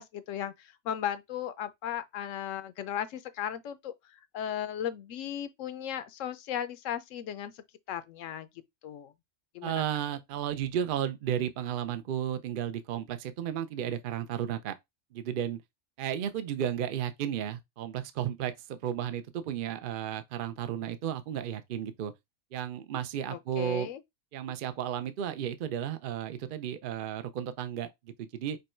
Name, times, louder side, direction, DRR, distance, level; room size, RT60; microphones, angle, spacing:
voice 1, 0.0-8.5 8.8-9.1 9.5-9.8 23.3-24.0, left 10 dB, 75° left, 1.0 m, -36 dB
voice 2, 9.6-14.7 15.1-15.6 16.0-22.1 22.5-23.9 24.3-28.6, right 10 dB, 60° right, 0.6 m, -33 dB
5.3 x 2.2 x 4.3 m
omnidirectional pair, 1.3 m